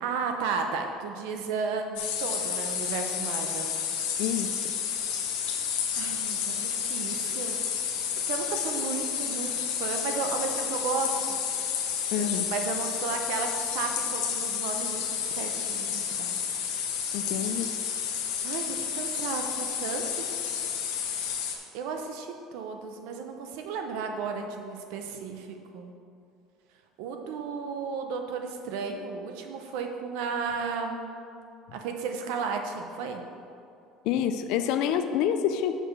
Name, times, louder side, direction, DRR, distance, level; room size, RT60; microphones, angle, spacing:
voice 1, 0.0-3.7 6.0-7.6 8.2-11.4 12.2-16.3 18.4-20.5 21.7-25.9 27.0-31.1 31.7-33.2, right 5 dB, 70° right, 4 dB, 0.8 m, -34 dB
sound 1, 2.0-21.6, left 8 dB, 90° left, 1.0 m, -31 dB
voice 2, 4.2-4.6 12.1-12.5 17.1-17.7 34.1-35.8, left 9 dB, 55° left, 8 dB, 0.4 m, -27 dB
6.3 x 5.0 x 6.5 m, 2.5 s
cardioid pair, 175°, 0 cm